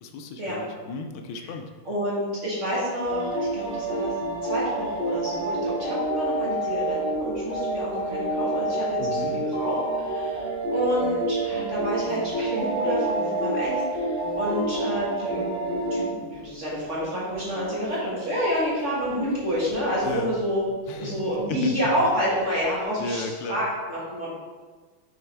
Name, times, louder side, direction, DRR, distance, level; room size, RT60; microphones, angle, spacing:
voice 1, 0.0-1.7 9.0-9.4 20.0-20.3 20.9-21.8 23.0-23.6, left 4 dB, 80° left, 5 dB, 1.4 m, -34 dB
voice 2, 1.8-20.6 21.0-24.3, equal, 40° right, -7 dB, 1.7 m, -29 dB
sound 1, 3.1-16.1 16.4-16.5 16.8-16.9 17.3-17.9 18.6-20.1 21.0-21.3 21.9-22.3 22.6-22.8, right 2 dB, 10° left, 1.7 m, -28 dB
6.3 x 4.4 x 3.3 m, 1.4 s
omnidirectional pair, 2.3 m